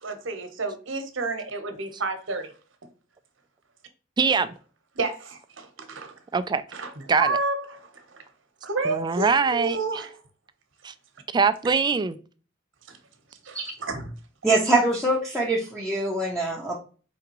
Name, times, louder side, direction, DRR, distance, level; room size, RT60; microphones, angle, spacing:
voice 1, 0.0-2.5 4.9-6.2 6.7-6.9 7.2-8.2 8.6-10.2 12.9-13.0 13.4-14.2, right 3 dB, 70° right, 1.0 m, -30 dB
voice 2, 4.2-4.5 6.3-6.6 7.1-7.4 8.9-9.8 10.8-10.9 11.3-12.2, right 5 dB, 20° right, 0.3 m, -22 dB
voice 3, 14.4-16.8, right 2 dB, ahead, 0.7 m, -24 dB
4.8 x 3.5 x 2.9 m
head